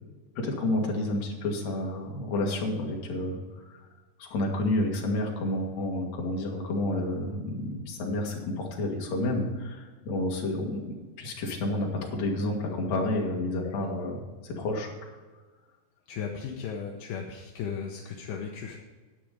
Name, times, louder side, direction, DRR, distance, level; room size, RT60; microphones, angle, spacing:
voice 1, 0.4-3.8 4.2-14.9, left 1 dB, 50° left, 0 dB, 2.6 m, -30 dB
voice 2, 16.1-18.8, left 6 dB, 70° left, 1 dB, 2.1 m, -36 dB
10.0 x 9.2 x 5.0 m, 1.3 s
omnidirectional pair, 4.7 m